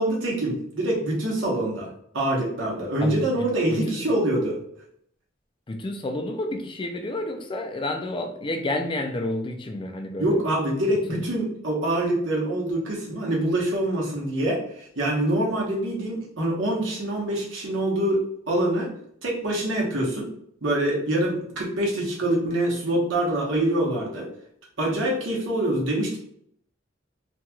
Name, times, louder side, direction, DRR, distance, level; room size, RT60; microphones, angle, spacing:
voice 1, 0.0-1.9 2.1-4.6 10.2-18.2 18.5-18.9 19.2-20.3 20.6-24.3 24.8-26.2, right 1 dB, 75° right, -3 dB, 1.0 m, -25 dB
voice 2, 3.0-4.0 5.7-10.4, left 1 dB, 25° left, 4 dB, 0.3 m, -30 dB
3.0 x 2.9 x 2.2 m, 0.69 s
head